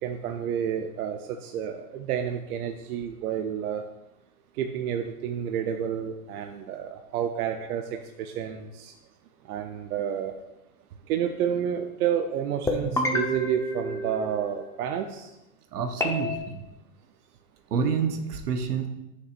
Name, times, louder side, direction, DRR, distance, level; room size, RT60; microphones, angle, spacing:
voice 1, 0.0-3.8 4.6-7.8 8.2-8.9 9.5-10.3 11.1-15.3, right 9 dB, 70° right, 5 dB, 0.8 m, -30 dB
sound 1, 12.7-14.8 16.0-16.4, left 1 dB, 5° left, 0.8 m, -29 dB
voice 2, 15.7-16.6 17.7-18.9, right 6 dB, 85° right, 6 dB, 1.1 m, -28 dB
11.0 x 6.5 x 2.5 m, 0.93 s
hypercardioid pair, 125°, 45 cm